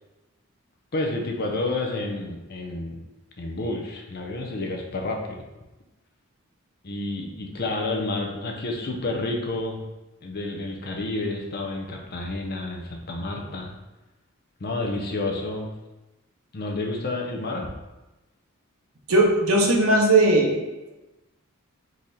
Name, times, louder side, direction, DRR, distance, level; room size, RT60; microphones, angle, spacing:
voice 1, 0.9-3.0 3.4-5.5 6.8-9.8 10.2-13.7 14.6-15.7 16.5-17.7, left 2 dB, 45° left, 1 dB, 0.7 m, -30 dB
voice 2, 19.1-20.6, right 2 dB, 75° right, 0 dB, 0.9 m, -18 dB
3.9 x 3.3 x 4.1 m, 1.0 s
head